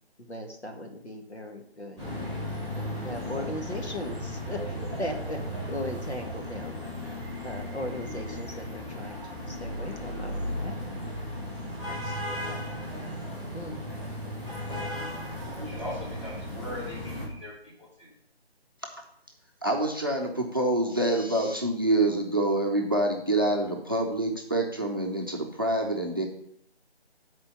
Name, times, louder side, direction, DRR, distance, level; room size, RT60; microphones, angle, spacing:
voice 1, 0.2-2.0 2.3-2.5 2.7-5.4 5.7-6.9 7.4-10.8 11.9-12.6 13.5-13.8, left 1 dB, 85° left, 3 dB, 1.8 m, -38 dB
sound 1, 2.0-17.3, left 1 dB, 10° left, 1.9 m, -35 dB
voice 2, 15.5-18.1, left 1 dB, 30° left, -8 dB, 2.4 m, -40 dB
voice 3, 19.6-26.3, right 1 dB, 20° right, 1 dB, 0.6 m, -26 dB
7.0 x 4.4 x 6.7 m, 0.68 s
figure-of-eight pair, 155°, 32 cm